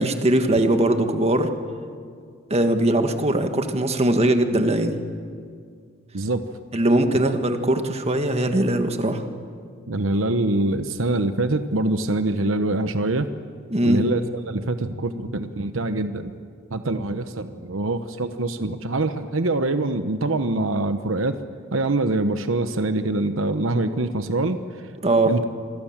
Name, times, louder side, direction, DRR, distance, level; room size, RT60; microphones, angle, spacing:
voice 1, 0.0-1.5 2.5-5.0 6.7-9.2 13.7-14.1 25.0-25.3, right 1 dB, 30° right, 7 dB, 1.7 m, -20 dB
voice 2, 6.1-6.4 9.9-13.3 13.8-16.3 16.7-21.4 21.7-24.9 25.2-25.4, right 2 dB, 75° right, 9 dB, 1.0 m, -24 dB
27.0 x 24.5 x 7.4 m, 2.1 s
head